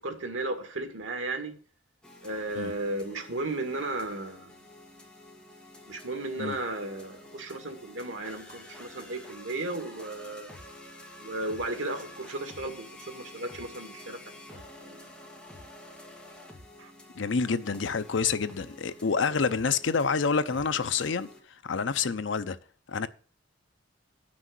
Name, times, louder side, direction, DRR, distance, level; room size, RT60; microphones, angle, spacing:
voice 1, 0.0-1.5 2.2-4.6 5.9-10.6 11.2-14.2 14.5-15.0 16.8-16.9, right 2 dB, 85° right, 2.0 m, -35 dB
sound 1, 2.0-21.4, left 1 dB, 5° left, 2.0 m, -49 dB
voice 2, 17.2-21.3 21.6-22.6 22.9-23.1, left 5 dB, 70° left, 0.6 m, -28 dB
8.1 x 6.2 x 7.7 m
head